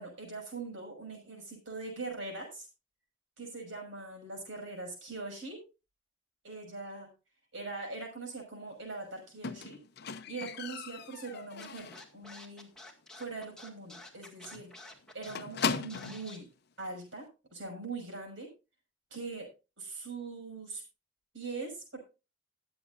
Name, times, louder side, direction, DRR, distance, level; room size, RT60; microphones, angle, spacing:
voice 1, 0.0-2.7 3.4-5.6 6.4-7.1 7.5-9.8 10.3-12.7 13.2-14.7 15.1-16.5 16.8-18.5 19.1-19.5 19.8-20.8 21.3-22.0, right 3 dB, 75° right, 2 dB, 5.9 m, -42 dB
Squeak, 9.4-12.2 12.5-12.9 13.2-13.3 13.7-13.8 14.0-14.2 14.4-16.3 17.1-17.2, left 6 dB, 55° left, 0.6 m, -38 dB
Scratching (performance technique), 11.6-16.4, left 2 dB, 5° left, 2.0 m, -49 dB
19.5 x 7.9 x 2.5 m, 0.30 s
head